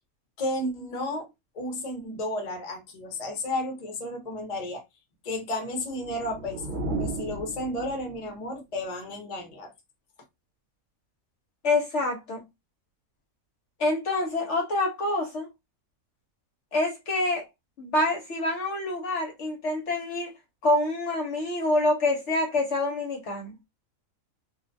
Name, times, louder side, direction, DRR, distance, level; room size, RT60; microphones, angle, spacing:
voice 1, 0.4-1.3 1.5-4.8 5.2-9.7, left 1 dB, 40° left, 0.6 m, -33 dB
sound 1, 5.7-8.4, right 2 dB, 65° right, 1.2 m, -35 dB
voice 2, 11.6-12.4 13.8-15.5 16.7-17.5 17.8-20.3 20.6-23.5, left 2 dB, 60° left, 0.9 m, -26 dB
2.5 x 2.1 x 2.5 m
omnidirectional pair, 1.5 m